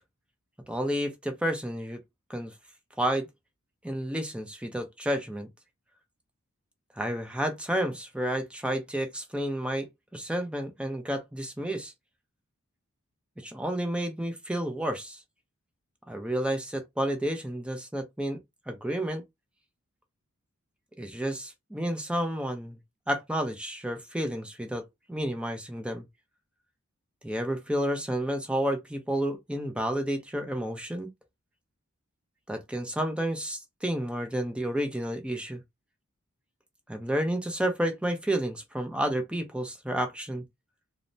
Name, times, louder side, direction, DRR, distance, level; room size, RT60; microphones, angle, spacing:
voice 1, 0.7-2.0 2.3-2.5 3.0-3.3 3.8-5.5 7.0-11.9 13.4-15.2 16.1-18.4 18.7-19.2 21.0-22.8 23.1-24.8 25.1-26.0 27.2-31.1 32.5-35.6 36.9-40.4, right 1 dB, 5° right, 0.5 m, -30 dB
3.1 x 2.0 x 2.6 m
head